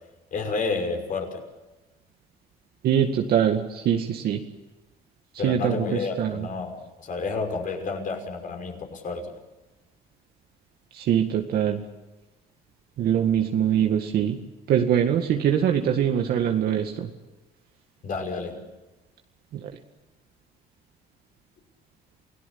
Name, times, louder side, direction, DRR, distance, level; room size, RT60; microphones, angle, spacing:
voice 1, 0.3-1.4 5.4-9.3 18.0-18.6, left 4 dB, 50° left, 4 dB, 6.0 m, -30 dB
voice 2, 2.8-4.4 5.4-6.5 10.9-11.8 13.0-14.4 14.7-17.1 19.5-19.6, right 9 dB, 65° right, 3 dB, 2.0 m, -23 dB
29.0 x 18.0 x 8.6 m, 1.1 s
cardioid pair, 110°, 17 cm